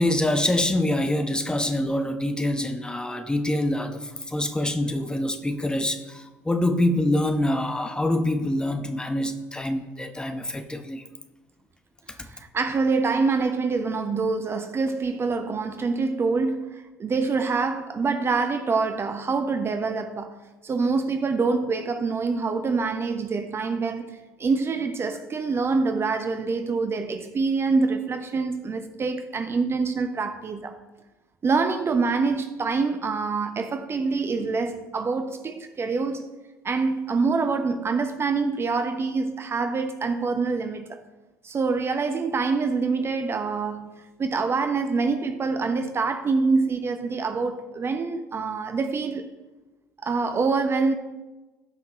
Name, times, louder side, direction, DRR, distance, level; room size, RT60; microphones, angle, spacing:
voice 1, 0.0-11.0 12.2-12.3, left 1 dB, 10° left, 1.0 m, -25 dB
voice 2, 12.2-20.4 20.6-30.8 31.4-36.2 36.6-41.0 41.4-49.3 50.0-50.9, right 4 dB, 30° right, 0.8 m, -25 dB
17.0 x 5.8 x 3.1 m
figure-of-eight pair, 60°, 9 cm